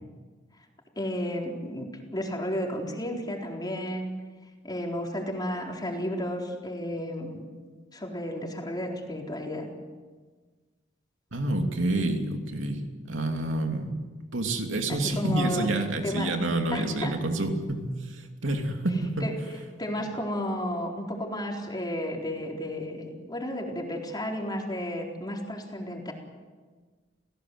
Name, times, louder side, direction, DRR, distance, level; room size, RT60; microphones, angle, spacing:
voice 1, 1.0-4.1 4.6-7.5 7.9-9.7 14.9-15.7 16.0-16.3 16.7-17.1 19.2-19.3 19.8-26.1, equal, 20° left, 0 dB, 4.0 m, -32 dB
voice 2, 11.3-13.9 14.3-19.3, right 2 dB, 80° right, 4 dB, 2.9 m, -28 dB
29.0 x 17.0 x 8.0 m, 1.4 s
head